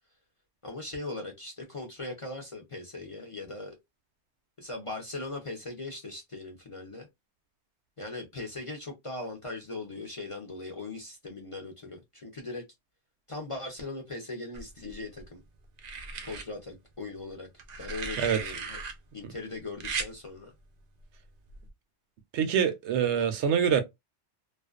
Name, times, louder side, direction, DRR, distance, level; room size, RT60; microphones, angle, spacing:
voice 1, 0.6-3.8 4.6-7.1 8.0-12.6 13.3-15.4 16.2-17.5 17.8-18.8 19.1-20.5, left 2 dB, 40° left, 0.5 m, -39 dB
sound 1, 14.5-15.2 15.8-16.5 17.6-18.9 19.8-20.1 21.5-21.7, right 5 dB, 55° right, 0.5 m, -36 dB
voice 2, 22.3-23.8, right 7 dB, 80° right, 0.9 m, -25 dB
2.5 x 2.2 x 2.3 m
omnidirectional pair, 1.2 m